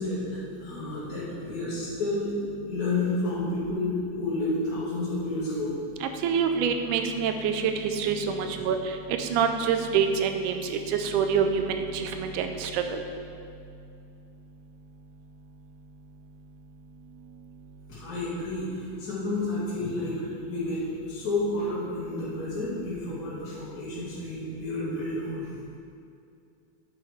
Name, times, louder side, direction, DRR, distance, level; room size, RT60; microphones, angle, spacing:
voice 1, 0.0-2.3 2.7-3.9 4.2-5.7 17.9-20.2 20.5-25.5, left 2 dB, 30° left, -11 dB, 2.5 m, -30 dB
voice 2, 6.0-8.8 9.1-13.0, right 6 dB, 85° right, 6 dB, 2.1 m, -26 dB
9.3 x 5.8 x 4.9 m, 2.5 s
omnidirectional pair, 3.5 m